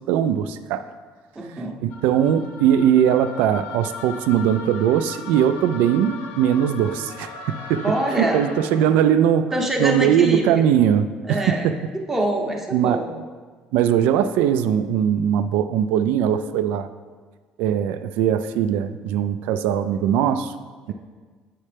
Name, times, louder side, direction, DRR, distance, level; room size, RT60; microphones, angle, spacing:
voice 1, 0.1-0.9 1.8-7.9 8.1-9.5 9.8-11.8 12.7-13.1 13.7-16.9 17.6-20.5, right 9 dB, 80° right, 12 dB, 0.3 m, -20 dB
voice 2, 1.4-1.8 7.8-8.4 9.5-10.6 11.3-11.7 11.9-13.1, right 1 dB, 15° right, 0 dB, 0.7 m, -25 dB
sound 1, 1.9-9.2, left 5 dB, 85° left, 0.6 m, -38 dB
8.4 x 4.3 x 3.3 m, 1.5 s
cardioid pair, 140°, 3 cm